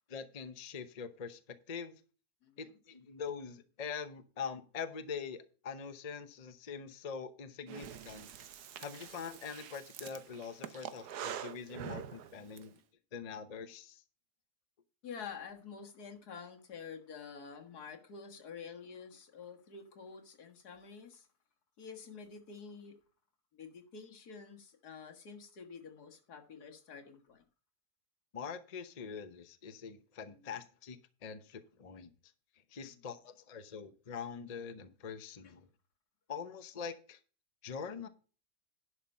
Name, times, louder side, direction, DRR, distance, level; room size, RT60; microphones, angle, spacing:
voice 1, 0.1-2.0 2.6-8.3 8.8-12.8 13.1-14.0 28.3-32.1 32.7-35.7 36.3-37.2 37.6-38.1, left 6 dB, 30° left, 0.8 m, -44 dB
voice 2, 2.4-2.8 15.0-21.3 21.8-23.0 23.5-27.5 30.3-30.5 32.8-33.1 35.4-35.5, left 6 dB, 80° left, 2.1 m, -49 dB
Breathing, 7.7-12.6, right 9 dB, 90° right, 1.4 m, -45 dB
11.0 x 5.7 x 5.5 m
omnidirectional pair, 1.7 m